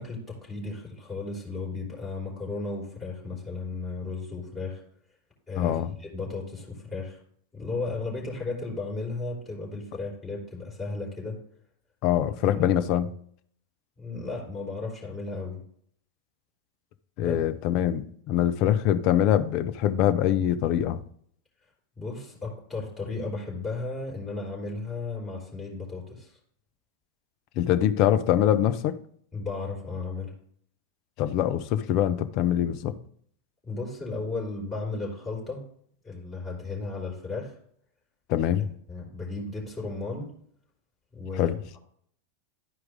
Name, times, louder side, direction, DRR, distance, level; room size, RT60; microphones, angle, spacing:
voice 1, 0.0-4.8 5.5-7.2 7.5-11.4 12.5-12.8 14.0-15.6 17.2-17.4 22.0-26.4 29.3-30.3 33.6-35.7 36.0-37.6 38.9-40.3 41.1-41.8, left 3 dB, 20° left, 3.4 m, -34 dB
voice 2, 5.6-5.9 12.0-13.1 17.2-21.0 27.6-29.0 31.2-32.9 38.3-38.7 41.4-41.6, left 11 dB, 40° left, 0.6 m, -24 dB
12.0 x 4.6 x 3.7 m
figure-of-eight pair, 90°, 0 cm